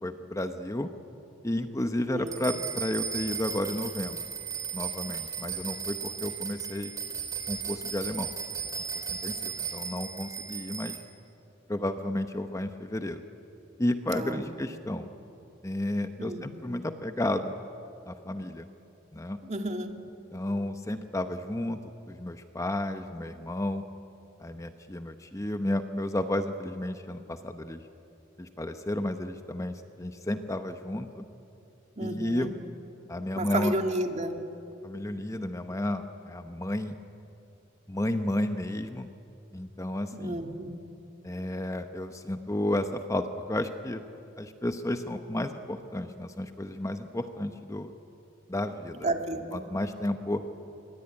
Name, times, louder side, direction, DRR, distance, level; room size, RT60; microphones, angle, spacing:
voice 1, 0.0-0.9 1.4-4.3 4.7-6.9 7.5-8.3 9.1-11.0 11.7-13.2 13.8-15.1 15.6-17.5 18.1-18.7 19.1-19.4 20.3-21.8 22.1-23.8 24.4-27.8 28.4-31.2 32.0-32.5 33.1-33.7 34.8-37.0 37.9-39.1 39.5-40.4 41.2-44.0 44.4-47.9 48.5-49.1 49.5-50.4, left 1 dB, 15° left, 8 dB, 0.9 m, -32 dB
voice 2, 2.1-2.4 14.1-14.5 16.2-16.5 19.4-20.0 32.0-32.6 33.4-34.4 40.1-40.8 49.0-49.6, right 2 dB, 35° right, 4 dB, 2.1 m, -32 dB
sound 1, 2.3-11.0, right 7 dB, 20° right, 3.3 m, -36 dB
26.0 x 23.0 x 9.8 m, 2.8 s
head